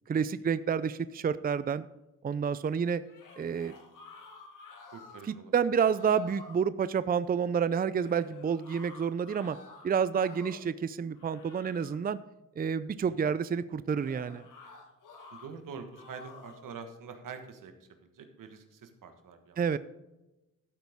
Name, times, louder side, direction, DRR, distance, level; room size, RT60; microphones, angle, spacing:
voice 1, 0.1-1.9 2.2-3.0 3.4-3.7 5.5-9.6 9.8-12.2 12.6-14.4 19.6-19.8, right 7 dB, 30° right, 15 dB, 0.4 m, -29 dB
sound 1, 3.0-5.4 5.7-6.6 8.0-10.7 11.1-12.1 14.0-15.5 15.9-16.7, left 3 dB, 85° left, 2.1 m, -51 dB
voice 2, 4.9-5.5 13.0-13.2 15.3-17.7 18.0-19.6, right 5 dB, 90° right, 7 dB, 1.5 m, -45 dB
12.5 x 8.1 x 3.6 m, 0.98 s
cardioid pair, 80°, 31 cm